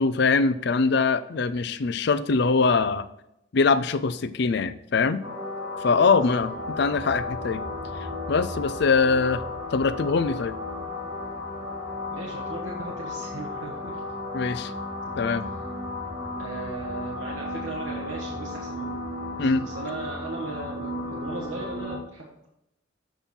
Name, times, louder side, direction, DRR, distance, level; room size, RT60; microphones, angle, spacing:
voice 1, 0.0-3.1 3.5-5.2 5.8-6.5 6.8-7.6 8.3-9.4 9.7-10.5 14.3-14.7 15.2-15.4 19.4-19.7, left 4 dB, 55° left, 13 dB, 0.4 m, -23 dB
sound 1, 5.2-22.0, left 2 dB, 20° right, 2.3 m, -34 dB
voice 2, 12.1-14.0 15.1-15.3 16.4-19.0 19.3-22.5, right 2 dB, 70° right, -3 dB, 1.3 m, -37 dB
7.3 x 5.4 x 4.4 m, 0.82 s
head